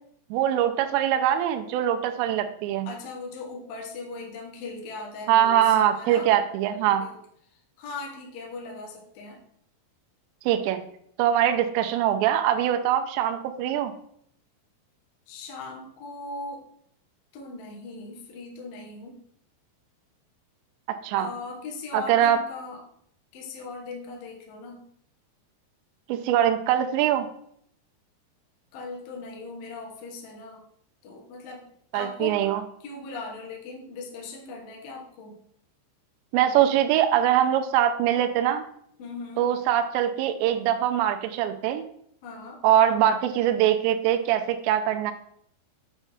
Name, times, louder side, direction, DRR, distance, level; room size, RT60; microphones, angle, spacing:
voice 1, 0.3-2.9 5.3-7.0 10.5-10.8 11.2-13.9 21.0-21.3 21.9-22.4 26.1-27.3 31.9-32.6 36.3-38.6 39.4-41.8 42.6-45.1, right 10 dB, 85° right, 7 dB, 2.6 m, -22 dB
voice 2, 2.9-6.4 6.8-7.2 7.5-9.4 15.3-16.6 17.3-19.2 21.2-22.8 23.3-24.8 28.7-30.6 31.0-31.6 31.9-32.4 32.8-35.4 39.0-39.5 42.2-42.6, left 3 dB, 70° left, 0 dB, 2.3 m, -39 dB
8.1 x 4.2 x 3.4 m, 0.67 s
omnidirectional pair, 5.4 m